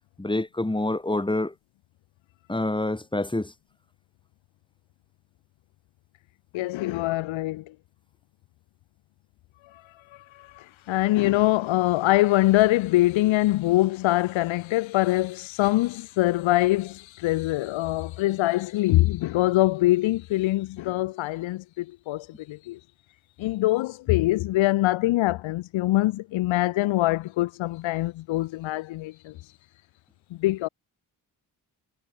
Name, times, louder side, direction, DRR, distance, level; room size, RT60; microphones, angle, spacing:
voice 1, 0.2-1.5 2.5-3.5, left 2 dB, 10° left, 2.1 m, -27 dB
voice 2, 6.5-7.7 9.7-22.9 23.4-29.6 30.3-30.7, left 17 dB, 75° left, 0.7 m, -24 dB
supercardioid pair, 45°, 47 cm